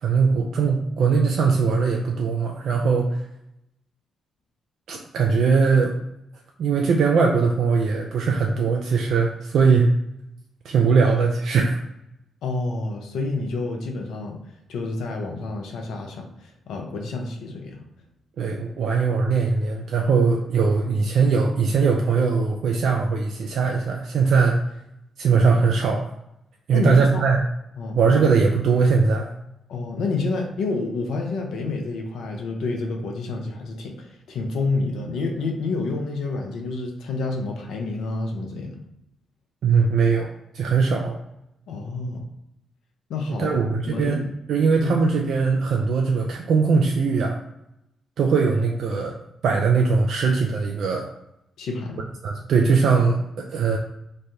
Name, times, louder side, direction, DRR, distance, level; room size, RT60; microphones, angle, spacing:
voice 1, 0.0-3.3 4.9-5.9 6.6-9.9 10.6-11.8 18.4-24.6 25.2-26.0 26.7-27.4 27.9-29.3 39.6-40.3 40.5-41.2 43.3-47.4 48.2-49.2 49.4-51.1 52.2-53.8, right 5 dB, 70° right, 1 dB, 0.4 m, -20 dB
voice 2, 12.4-14.4 14.7-17.8 26.7-27.2 27.8-28.2 29.7-38.8 41.7-42.3 43.1-44.3 44.8-45.0 51.6-52.1, left 3 dB, 75° left, 2 dB, 0.6 m, -29 dB
3.2 x 2.2 x 2.7 m, 0.84 s
hypercardioid pair, 45°, 0 cm